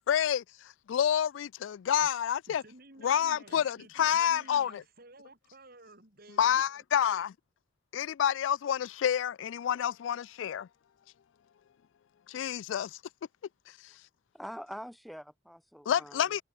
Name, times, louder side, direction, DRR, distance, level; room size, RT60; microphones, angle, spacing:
voice 1, 0.0-2.6 3.0-4.8 6.4-7.3 7.9-10.7 12.3-13.0 15.9-16.4, left 9 dB, 75° left, 0.3 m, -28 dB
voice 2, 2.5-6.6, right 2 dB, 50° right, 6.5 m, -54 dB
voice 3, 14.3-16.3, equal, ahead, 1.6 m, -44 dB
head